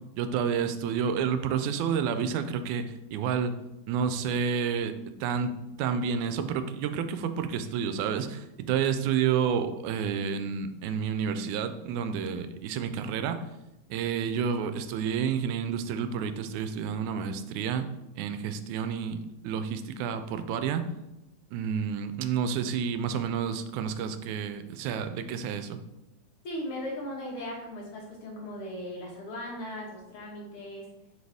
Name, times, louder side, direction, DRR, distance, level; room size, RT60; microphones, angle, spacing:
voice 1, 0.2-3.6 3.9-4.9 5.2-5.5 5.8-13.4 13.9-17.9 18.2-19.2 19.4-20.8 21.5-25.8, right 7 dB, 80° right, 9 dB, 1.9 m, -30 dB
voice 2, 26.4-30.9, left 1 dB, 55° left, -2 dB, 2.0 m, -38 dB
6.4 x 4.8 x 3.5 m, 0.94 s
omnidirectional pair, 3.4 m